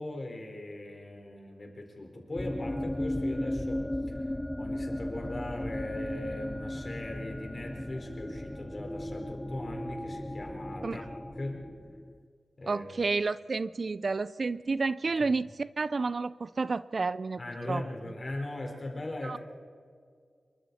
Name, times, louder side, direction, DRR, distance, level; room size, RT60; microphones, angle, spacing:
voice 1, 0.0-4.3 4.6-11.0 11.4-11.7 12.6-12.9 15.2-15.3 17.4-19.4, left 1 dB, 35° left, 1 dB, 4.5 m, -39 dB
sound 1, 2.3-12.2, left 1 dB, 10° left, 0.7 m, -36 dB
voice 2, 12.7-17.4 17.7-17.8 19.2-19.4, right 4 dB, 50° right, 16 dB, 0.4 m, -30 dB
27.5 x 23.5 x 4.3 m, 2.1 s
wide cardioid pair, 95°, 0 cm